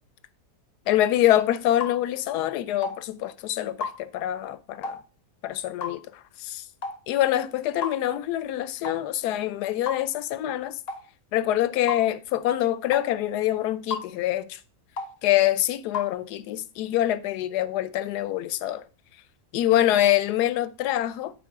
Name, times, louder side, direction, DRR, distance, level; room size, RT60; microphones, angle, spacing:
voice 1, 0.9-5.0 5.4-6.0 6.4-6.6 7.1-10.8 11.3-14.6 15.2-18.8 19.5-21.3, left 13 dB, 85° left, 1.1 m, -25 dB
sound 1, 1.8-2.0 2.8-3.0 3.8-4.0 4.8-5.0 5.8-6.0 6.8-7.0 7.8-8.0 8.8-9.0 9.9-10.1 10.9-11.0 11.9-12.0 12.9-13.1 13.9-14.1 15.0-15.1 15.9-16.1, left 5 dB, 50° left, 0.8 m, -32 dB
9.7 x 4.5 x 3.6 m
omnidirectional pair, 1.7 m